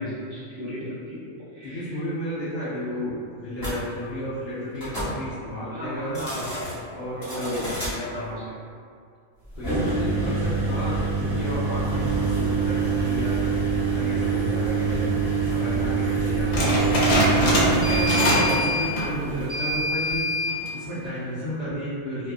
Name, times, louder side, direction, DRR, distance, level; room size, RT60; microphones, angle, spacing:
voice 1, 0.0-2.0 5.7-8.5 18.4-18.5, left 1 dB, 65° right, -11 dB, 1.1 m, -36 dB
voice 2, 1.6-6.3 6.9-7.7 8.0-8.4 9.6-13.4 13.9-16.9 17.4-20.3 20.7-22.3, equal, 55° left, -13 dB, 0.8 m, -32 dB
sound 1, 3.6-3.7 4.8-5.1 6.0-6.7 7.2-7.9 9.5-20.6, right 3 dB, 15° left, 1.1 m, -25 dB
sound 2, 16.5-18.6 18.9-19.2 19.7-19.8 20.5-20.9, left 1 dB, 80° left, 1.0 m, -23 dB
2.6 x 2.3 x 2.4 m, 2.3 s
omnidirectional pair, 1.4 m